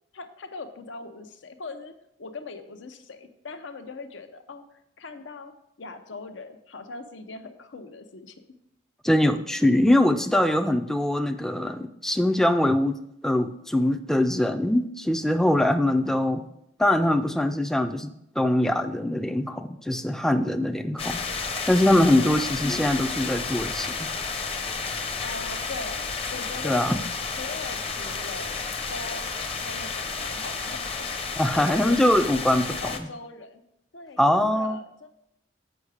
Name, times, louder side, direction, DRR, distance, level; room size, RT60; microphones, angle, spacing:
voice 1, 0.1-1.9 2.2-5.5 5.8-8.4 22.2-22.6 25.2-26.9 27.4-29.3 29.6-31.1 31.5-32.5 32.8-33.6 33.9-35.1, left 3 dB, 85° left, 8 dB, 0.7 m, -40 dB
voice 2, 9.0-16.4 16.8-18.1 18.4-21.2 21.7-23.9 26.6-27.0 31.4-33.1 34.2-34.8, left 1 dB, 5° left, 7 dB, 0.3 m, -22 dB
sound 1, 21.0-33.0, left 4 dB, 30° left, 0.7 m, -31 dB
8.0 x 5.6 x 4.8 m, 0.78 s
head